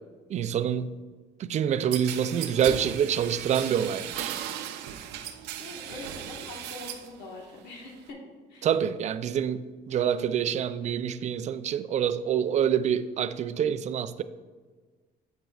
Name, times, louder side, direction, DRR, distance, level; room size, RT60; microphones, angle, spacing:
voice 1, 0.3-0.9 1.4-4.4 8.6-14.2, right 8 dB, 45° right, 0.4 m, -26 dB
sound 1, 1.9-7.1 7.5-8.1, right 10 dB, 85° right, 0.6 m, -37 dB
voice 2, 5.6-8.2 8.5-8.7, left 2 dB, 75° left, 1.4 m, -43 dB
9.2 x 7.2 x 2.4 m
cardioid pair, 110°, 17 cm